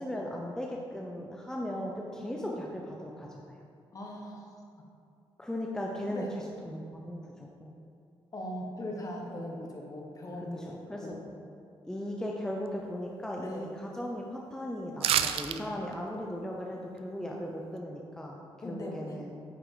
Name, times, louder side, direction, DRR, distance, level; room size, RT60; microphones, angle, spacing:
voice 1, 0.0-3.6 5.4-7.7 10.6-11.2 11.9-18.4 18.6-19.3, equal, 5° left, -1 dB, 0.7 m, -37 dB
voice 2, 3.9-4.5 6.1-6.4 8.3-11.2 13.4-13.7 18.6-19.2, left 1 dB, 35° left, 0 dB, 1.3 m, -39 dB
sound 1, 15.0-15.6 15.9-16.0, right 10 dB, 90° right, 0.4 m, -27 dB
9.6 x 4.9 x 3.9 m, 2.5 s
cardioid pair, 105°, 10 cm